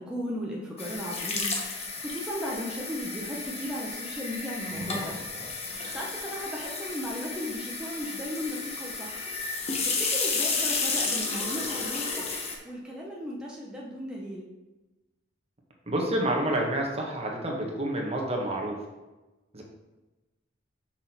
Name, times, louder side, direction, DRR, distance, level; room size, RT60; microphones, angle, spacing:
voice 1, 0.0-5.2 5.9-9.3 9.8-14.5, equal, 5° right, -4 dB, 1.0 m, -36 dB
sound 1, 0.8-12.6, left 3 dB, 35° left, 1.1 m, -32 dB
voice 2, 15.9-18.8 19.5-19.6, right 1 dB, 35° right, 0 dB, 1.2 m, -28 dB
6.2 x 6.0 x 4.3 m, 1.1 s
head